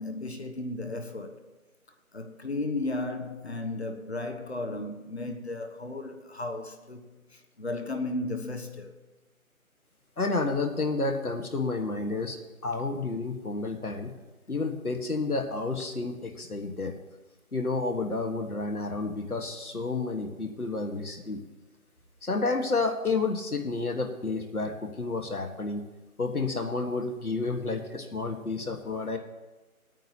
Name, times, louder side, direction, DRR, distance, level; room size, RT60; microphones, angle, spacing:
voice 1, 0.0-1.4 2.1-9.0, left 2 dB, 45° left, 1.2 m, -34 dB
voice 2, 10.2-12.4 12.6-14.1 14.5-16.9 17.5-21.4 22.2-25.8 26.2-29.2, left 3 dB, 75° left, 1.6 m, -30 dB
19.0 x 9.2 x 2.9 m
figure-of-eight pair, 160°, 44 cm